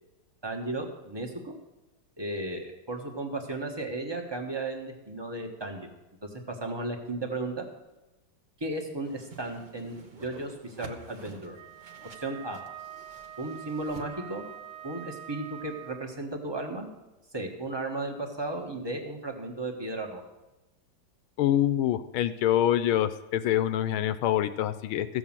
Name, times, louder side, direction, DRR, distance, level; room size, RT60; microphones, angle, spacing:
voice 1, 0.4-1.6 2.2-5.9 6.2-7.6 8.6-11.6 12.2-12.6 13.4-14.4 14.8-16.9 17.3-20.2, right 2 dB, 15° right, 3 dB, 0.9 m, -35 dB
Whoosh swoosh swish, 9.0-14.1, right 4 dB, 55° right, 0.5 m, -49 dB
Wind instrument woodwind instrument, 11.5-16.2, right 11 dB, 85° right, 1.5 m, -45 dB
voice 2, 21.4-25.1, left 11 dB, 80° left, 12 dB, 1.4 m, -25 dB
15.0 x 6.2 x 7.4 m, 1.0 s
omnidirectional pair, 2.4 m